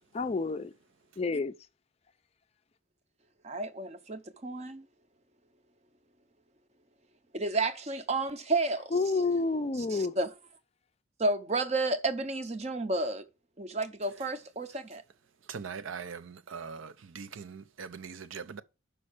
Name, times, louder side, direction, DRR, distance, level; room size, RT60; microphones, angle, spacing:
voice 1, 0.1-0.7 1.2-1.5 8.9-10.1, left 3 dB, 30° left, 0.4 m, -29 dB
voice 2, 3.4-4.8 7.3-8.9 9.9-10.3 11.2-13.2 13.6-15.0, right 2 dB, 30° right, 0.6 m, -31 dB
voice 3, 15.5-18.6, right 6 dB, 75° right, 0.5 m, -41 dB
5.5 x 5.4 x 6.5 m
head